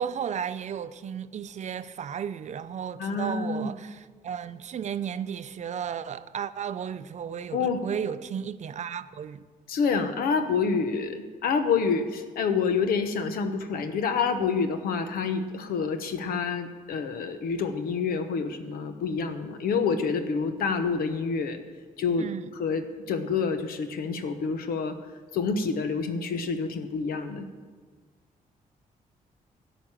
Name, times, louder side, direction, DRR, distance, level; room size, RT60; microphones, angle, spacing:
voice 1, 0.0-9.4 22.2-22.4, right 8 dB, 50° right, 0.5 m, -34 dB
voice 2, 3.0-3.7 7.5-7.8 9.7-21.6 22.0-25.0 25.3-27.5, left 5 dB, 90° left, 1.0 m, -28 dB
13.0 x 5.1 x 8.8 m
cardioid pair, 90°, 15 cm